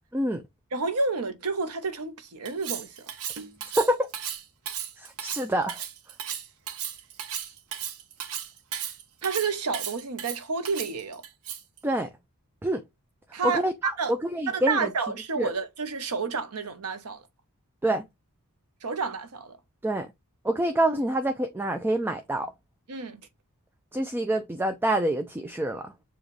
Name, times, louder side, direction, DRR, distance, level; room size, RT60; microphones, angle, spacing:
voice 1, 0.7-2.9 9.2-11.2 13.3-14.1 14.5-17.2 18.8-19.6 22.9-23.2, right 4 dB, 90° right, 0.9 m, -30 dB
Cutlery silverware, 2.5-11.8, right 9 dB, 70° right, 0.6 m, -35 dB
voice 2, 5.0-5.8 11.8-12.1 12.6-12.8 13.4-14.9 15.4-15.5 17.8-18.0 19.8-20.1 20.4-22.5 23.9-25.9, right 1 dB, 10° right, 0.3 m, -26 dB
7.0 x 2.4 x 3.1 m
head